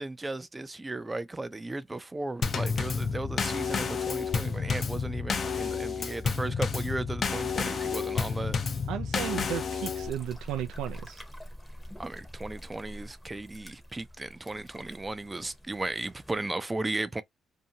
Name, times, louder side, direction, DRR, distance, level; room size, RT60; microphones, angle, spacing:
voice 1, 0.0-8.6 12.0-17.2, right 2 dB, 20° right, 0.4 m, -35 dB
Drum kit / Snare drum / Bass drum, 2.4-10.1, left 5 dB, 45° left, 0.4 m, -30 dB
voice 2, 8.9-11.2, right 10 dB, 90° right, 0.3 m, -34 dB
sound 1, 10.0-16.3, equal, 5° left, 0.7 m, -46 dB
2.7 x 2.1 x 2.8 m
cardioid pair, 90°, 0 cm